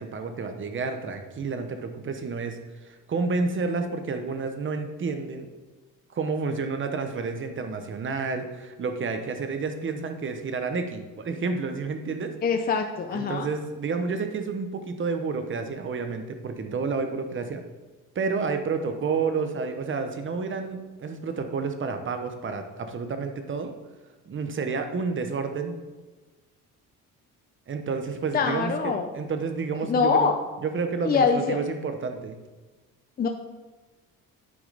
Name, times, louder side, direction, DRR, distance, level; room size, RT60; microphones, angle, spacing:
voice 1, 0.0-2.6 2.8-5.5 6.1-12.3 13.1-17.6 18.1-23.7 24.3-25.8 27.7-30.3 30.6-32.4, right 4 dB, 35° right, 7 dB, 0.9 m, -30 dB
voice 2, 12.4-13.5 28.3-29.1 29.8-30.3 31.0-31.6 33.2-33.3, left 5 dB, 30° left, 5 dB, 0.5 m, -24 dB
9.5 x 4.9 x 4.0 m, 1.2 s
cardioid pair, 110°, 33 cm